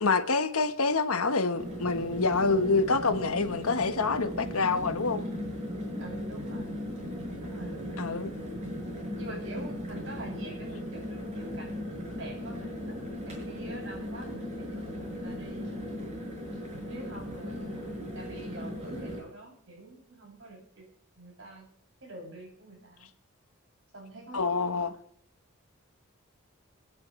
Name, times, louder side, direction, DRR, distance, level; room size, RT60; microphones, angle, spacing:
voice 1, 0.0-5.2 8.0-8.3 24.3-24.9, left 4 dB, 90° left, 1.3 m, -27 dB
sound 1, 1.5-19.2, equal, 30° right, 6.8 m, -37 dB
voice 2, 6.0-6.8 7.4-8.0 9.2-11.8 12.2-13.0 13.3-16.2 16.5-20.9 21.2-21.7 22.0-23.1 23.9-24.7, right 2 dB, 60° right, 7.3 m, -46 dB
27.0 x 10.5 x 3.3 m
head